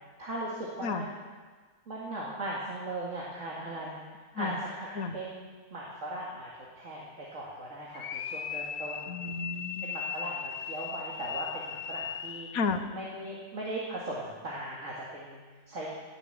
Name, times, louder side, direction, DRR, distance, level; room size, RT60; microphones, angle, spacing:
voice 1, 0.2-1.1 1.9-9.1 9.8-12.5 12.9-15.9, right 1 dB, 60° right, -5 dB, 2.4 m, -38 dB
sound 1, 7.9-12.7, left 7 dB, 65° left, 0.5 m, -38 dB
voice 2, 9.1-9.9 12.5-12.9, left 4 dB, 85° left, 8 dB, 1.5 m, -32 dB
18.5 x 7.1 x 7.9 m, 1.4 s
omnidirectional pair, 1.5 m